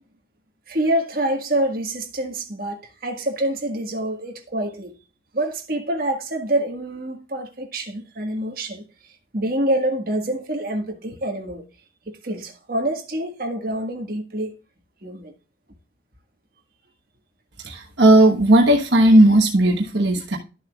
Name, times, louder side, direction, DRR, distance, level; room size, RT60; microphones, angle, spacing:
voice 1, 0.7-5.0 5.3-8.9 9.3-11.6 12.0-14.6 15.0-15.3, right 1 dB, 50° right, 1.6 m, -26 dB
voice 2, 17.6-20.4, right 1 dB, 75° right, 1.3 m, -15 dB
12.0 x 7.1 x 2.4 m
head